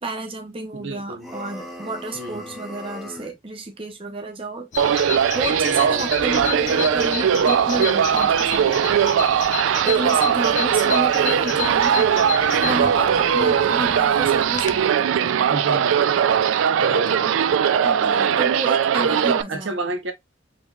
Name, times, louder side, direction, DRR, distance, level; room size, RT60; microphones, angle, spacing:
voice 1, 0.0-5.0 5.3-9.0 9.3-12.1 12.5-15.5 17.1-17.3 17.8-19.7, right 2 dB, 30° right, 0.7 m, -31 dB
voice 2, 0.7-1.3 2.1-2.6 5.7-6.1 11.4-11.9 13.4-13.7 15.5-16.1 16.8-17.6 19.0-19.1 19.5-20.1, right 2 dB, 75° right, 0.9 m, -32 dB
sound 1, 1.2-3.4, left 1 dB, ahead, 0.9 m, -38 dB
Bird vocalization bird call bird song, 4.7-14.8, left 9 dB, 40° left, 0.4 m, -32 dB
sound 2, 4.8-19.4, right 8 dB, 90° right, 0.3 m, -19 dB
5.1 x 3.3 x 2.4 m
head